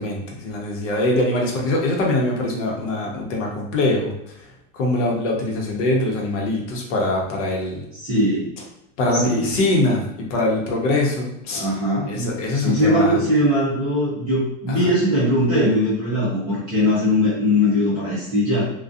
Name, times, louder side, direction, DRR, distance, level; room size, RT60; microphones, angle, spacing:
voice 1, 0.0-4.1 4.7-7.9 9.0-11.6 12.1-13.2 14.7-14.8, left 2 dB, 65° left, -1 dB, 0.8 m, -22 dB
voice 2, 7.9-8.5 9.2-9.6 11.5-18.6, left 1 dB, 20° right, -11 dB, 0.3 m, -20 dB
2.5 x 2.2 x 2.3 m, 0.81 s
supercardioid pair, 180°, 39 cm